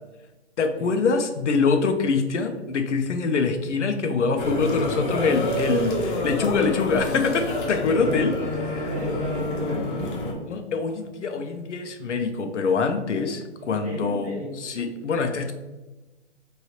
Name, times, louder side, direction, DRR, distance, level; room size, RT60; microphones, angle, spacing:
voice 1, 0.6-8.3 10.5-15.5, left 4 dB, 85° left, 6 dB, 0.6 m, -24 dB
sound 1, 4.4-10.3, left 1 dB, 45° left, 0.8 m, -28 dB
voice 2, 5.6-6.2 7.7-10.4 13.6-14.7, right 1 dB, 15° right, -9 dB, 0.5 m, -35 dB
3.2 x 2.7 x 2.8 m, 1.1 s
hypercardioid pair, 135°, 35 cm